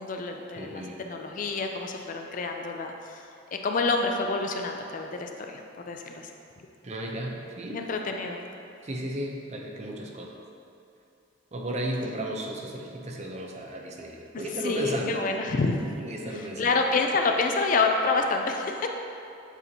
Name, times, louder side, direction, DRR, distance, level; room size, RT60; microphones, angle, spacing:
voice 1, 0.0-3.2 3.5-6.3 7.7-8.4 14.6-15.8 16.3-18.9, left 3 dB, 45° left, 3 dB, 0.4 m, -28 dB
voice 2, 0.6-1.0 6.8-7.8 8.8-10.3 11.5-15.2 16.0-16.7, equal, 35° right, 0 dB, 0.6 m, -34 dB
8.1 x 4.3 x 2.8 m, 2.6 s
head